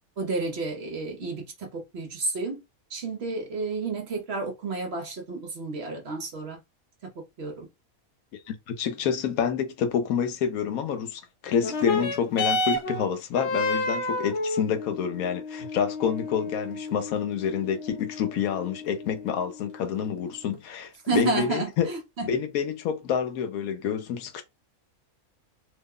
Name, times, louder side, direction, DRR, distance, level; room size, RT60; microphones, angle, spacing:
voice 1, 0.2-2.6 2.9-6.6 7.2-7.7 21.1-22.3, right 3 dB, 55° right, 0.9 m, -31 dB
voice 2, 8.5-21.9 22.2-24.4, left 7 dB, 80° left, 1.1 m, -28 dB
sound 1, 11.6-20.5 21.4-21.5, left 2 dB, 60° left, 0.8 m, -31 dB
3.0 x 2.1 x 3.5 m
omnidirectional pair, 1.5 m